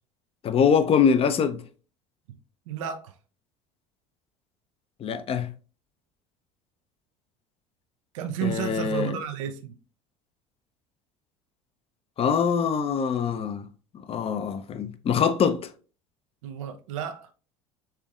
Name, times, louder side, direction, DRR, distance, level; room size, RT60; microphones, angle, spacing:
voice 1, 0.4-1.6 5.0-5.5 8.4-9.2 12.2-13.7 14.1-15.7, left 7 dB, 35° left, 0.6 m, -23 dB
voice 2, 2.7-3.2 8.1-9.7 16.4-17.3, right 8 dB, 70° right, 0.6 m, -32 dB
5.7 x 3.5 x 2.4 m
hypercardioid pair, 70°, 17 cm